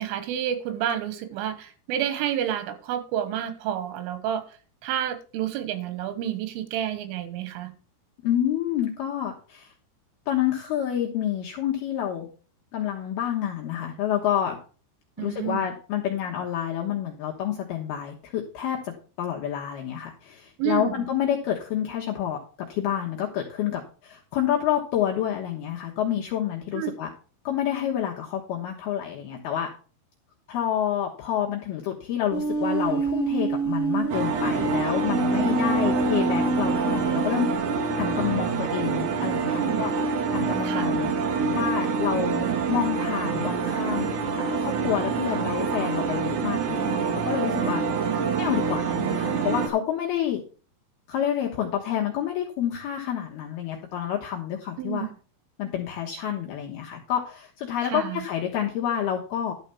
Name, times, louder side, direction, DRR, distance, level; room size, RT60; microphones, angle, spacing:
voice 1, 0.0-4.4 4.8-7.7 15.2-15.7 20.6-21.1 26.7-26.9 39.4-39.8 40.7-40.9 48.1-48.3 54.8-55.1 57.8-58.2, right 10 dB, 90° right, 11 dB, 3.8 m, -29 dB
voice 2, 8.2-9.7 10.3-12.3 12.7-14.6 15.2-18.9 19.2-27.1 27.4-29.7 30.5-37.5 38.0-39.9 40.3-41.1 41.5-47.8 48.4-50.4 51.1-55.1 55.6-59.5, left 10 dB, 65° left, -1 dB, 2.8 m, -28 dB
sound 1, 32.3-37.5, right 2 dB, 35° right, 1.4 m, -27 dB
sound 2, 34.1-49.7, right 5 dB, 60° right, 2.3 m, -26 dB
12.0 x 5.0 x 6.9 m, 0.38 s
omnidirectional pair, 5.5 m